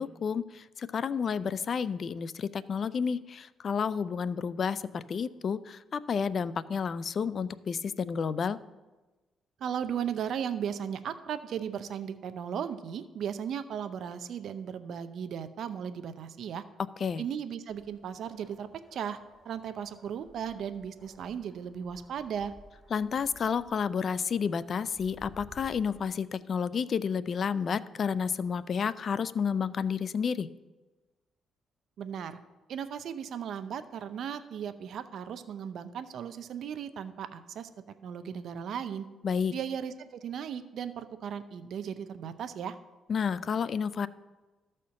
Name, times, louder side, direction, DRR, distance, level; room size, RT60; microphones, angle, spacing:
voice 1, 0.0-8.6 17.0-17.2 22.9-30.5 39.2-39.5 43.1-44.1, left 6 dB, 50° left, 17 dB, 0.3 m, -31 dB
voice 2, 9.6-16.6 17.2-19.2 19.4-22.5 32.0-32.4 32.7-37.7 38.0-39.1 39.5-42.8, right 8 dB, 70° right, 11 dB, 0.6 m, -36 dB
sound 1, 17.7-26.1, equal, 10° left, 3.1 m, -57 dB
13.0 x 4.3 x 6.3 m, 1.2 s
cardioid pair, 90°, 0 cm